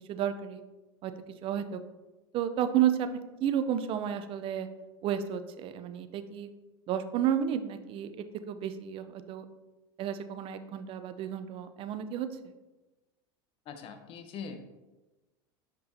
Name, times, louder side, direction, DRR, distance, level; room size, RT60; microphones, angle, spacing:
voice 1, 0.1-0.6 1.0-1.1 1.4-1.8 2.3-4.7 5.0-6.5 6.9-8.1 8.5-9.4 10.0-12.5, right 9 dB, 45° right, 10 dB, 0.6 m, -31 dB
voice 2, 13.7-14.6, left 6 dB, 45° left, 7 dB, 0.9 m, -42 dB
6.9 x 5.2 x 2.7 m, 1.1 s
hypercardioid pair, 100°, 13 cm